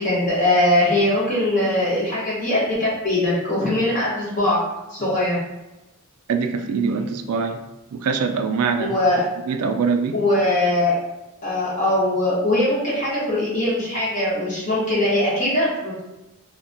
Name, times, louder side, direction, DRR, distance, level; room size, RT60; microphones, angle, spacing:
voice 1, 0.0-4.6 4.9-5.4 8.8-9.2 10.1-10.9 11.4-16.0, left 1 dB, 35° left, -7 dB, 0.9 m, -21 dB
voice 2, 6.3-7.6 7.9-9.0 9.5-10.2, right 5 dB, 70° right, 6 dB, 0.3 m, -23 dB
2.2 x 2.2 x 3.8 m, 0.99 s
head